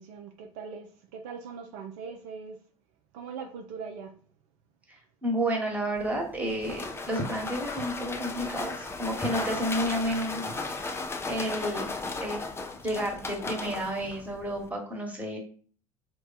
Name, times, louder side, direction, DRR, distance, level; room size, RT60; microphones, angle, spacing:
voice 1, 0.0-2.6 3.1-4.1, right 5 dB, 60° right, 4 dB, 0.5 m, -41 dB
voice 2, 5.2-10.4 11.3-12.4 12.8-15.4, equal, 10° right, 0 dB, 1.4 m, -31 dB
sound 1, 6.0-14.7, left 3 dB, 15° left, 0.5 m, -36 dB
3.4 x 2.3 x 4.0 m, 0.44 s
figure-of-eight pair, 70°, 18 cm